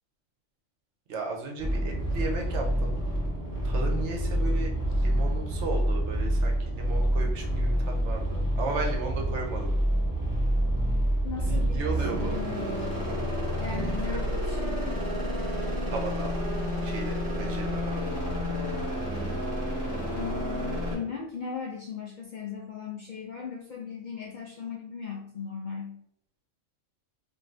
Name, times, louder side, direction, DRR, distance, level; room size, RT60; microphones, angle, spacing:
voice 1, 1.1-3.0 3.6-9.7 11.4-12.4 14.1-14.2 15.9-16.3 16.8-18.2, right 3 dB, 65° right, 1 dB, 0.9 m, -35 dB
sound 1, 1.6-21.0, equal, 20° right, 0.6 m, -28 dB
voice 2, 11.2-12.9 13.6-15.0 20.1-26.0, left 6 dB, 65° left, -3 dB, 0.4 m, -38 dB
2.5 x 2.5 x 3.2 m, 0.71 s
omnidirectional pair, 1.4 m